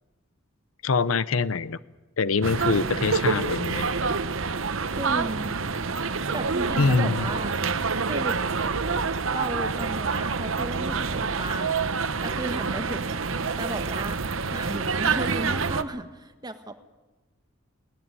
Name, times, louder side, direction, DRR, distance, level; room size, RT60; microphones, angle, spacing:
voice 1, 0.8-1.8 2.2-3.9 6.8-7.3, left 4 dB, 75° left, 17 dB, 0.7 m, -24 dB
sound 1, 2.4-15.8, right 4 dB, 70° right, 1.0 m, -27 dB
voice 2, 5.0-5.6 6.3-7.5 8.1-8.4 9.3-11.7 12.2-13.3 13.6-14.2 14.5-16.7, right 1 dB, 20° right, 8 dB, 1.6 m, -34 dB
20.0 x 18.5 x 9.8 m, 1.1 s
head